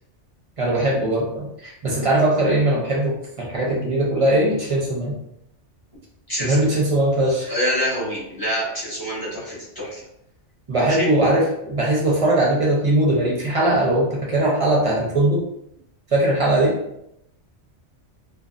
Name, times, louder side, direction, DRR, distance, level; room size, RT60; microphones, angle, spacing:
voice 1, 0.6-5.1 6.4-7.5 10.7-15.4 16.1-16.7, right 1 dB, 35° right, -4 dB, 0.6 m, -20 dB
voice 2, 6.3-6.8 7.5-10.0 10.9-11.1, equal, 20° left, -8 dB, 1.0 m, -26 dB
2.6 x 2.5 x 2.4 m, 0.78 s
omnidirectional pair, 1.2 m